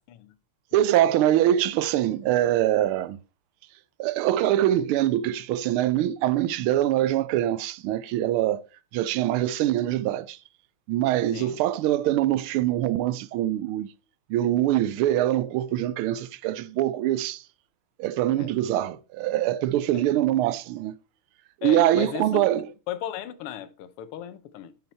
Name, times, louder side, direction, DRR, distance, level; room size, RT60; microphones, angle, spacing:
voice 1, 0.7-3.2 4.0-8.7 8.9-10.4 10.9-13.9 14.3-17.4 18.0-20.9 21.6-22.7, right 13 dB, 80° right, 1.4 m, -24 dB
voice 2, 21.6-22.5 22.9-24.7, left 11 dB, 85° left, 1.7 m, -36 dB
9.3 x 5.7 x 4.3 m
omnidirectional pair, 2.4 m